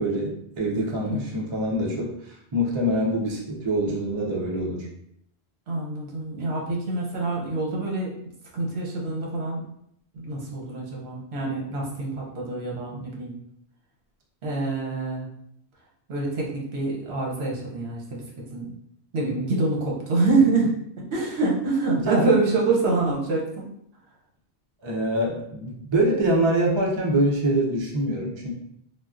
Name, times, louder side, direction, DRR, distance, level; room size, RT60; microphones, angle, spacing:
voice 1, 0.0-4.9 22.0-22.3 24.8-28.5, right 1 dB, 40° right, -2 dB, 0.4 m, -25 dB
voice 2, 5.7-8.1 8.5-9.6 10.1-13.3 14.4-15.3 16.1-18.2 18.5-18.7 19.1-23.6, right 3 dB, 70° right, -2 dB, 1.0 m, -26 dB
3.5 x 2.2 x 2.4 m, 0.72 s
omnidirectional pair, 1.1 m